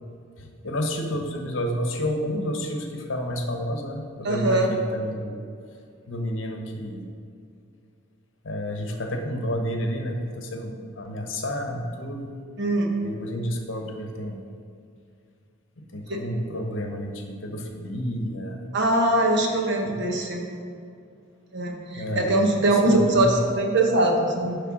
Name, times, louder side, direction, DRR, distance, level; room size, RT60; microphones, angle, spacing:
voice 1, 0.4-5.4 6.1-7.1 8.4-12.3 13.0-14.4 15.9-18.6 19.8-20.0 22.0-22.3 22.6-23.3, equal, 65° left, 3 dB, 1.0 m, -30 dB
voice 2, 4.2-4.7 12.6-12.9 16.1-16.2 18.7-20.4 21.5-24.6, right 1 dB, 60° right, 1 dB, 1.1 m, -22 dB
10.0 x 3.4 x 6.1 m, 2.4 s
head